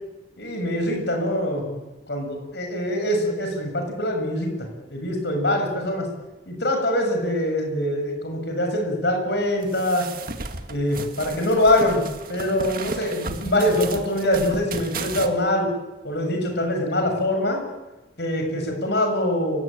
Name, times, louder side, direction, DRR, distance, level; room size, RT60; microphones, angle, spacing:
voice 1, 0.4-1.8 2.1-6.1 6.5-10.1 10.7-12.0 12.3-15.7 16.0-17.6 18.2-19.6, left 1 dB, 60° left, 3 dB, 7.2 m, -24 dB
sound 1, 9.6-15.3, right 3 dB, 50° right, 2.0 m, -34 dB
30.0 x 17.5 x 9.1 m, 1.1 s
head